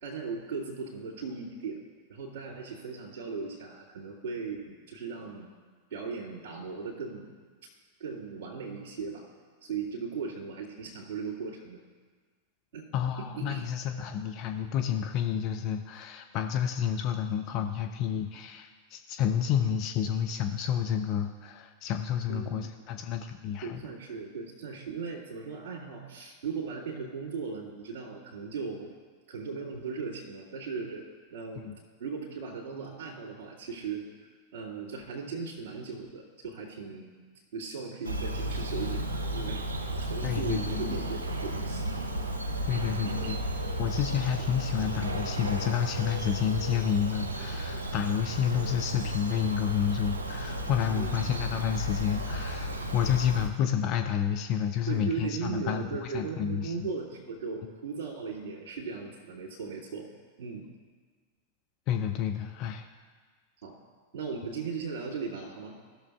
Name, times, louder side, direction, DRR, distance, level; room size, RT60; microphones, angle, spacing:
voice 1, 0.0-1.8 2.1-5.5 5.9-7.3 8.0-9.2 9.6-11.8 12.7-12.8 13.2-13.6 22.3-22.7 23.6-28.9 29.3-31.0 31.3-31.7 32.0-34.1 34.5-37.1 37.5-41.9 42.7-43.3 50.9-51.2 54.9-60.1 60.4-60.6 63.6-63.7 64.1-65.8, right 5 dB, 50° right, -8 dB, 2.2 m, -37 dB
voice 2, 12.9-23.8 31.6-31.8 40.2-41.0 42.7-43.4 43.8-56.9 61.9-62.9, left 8 dB, 40° left, 5 dB, 0.5 m, -30 dB
Bird vocalization bird call bird song, 38.0-53.5, right 1 dB, 75° right, 0.7 m, -34 dB
16.0 x 6.6 x 2.3 m, 1.5 s
figure-of-eight pair, 90°, 0 cm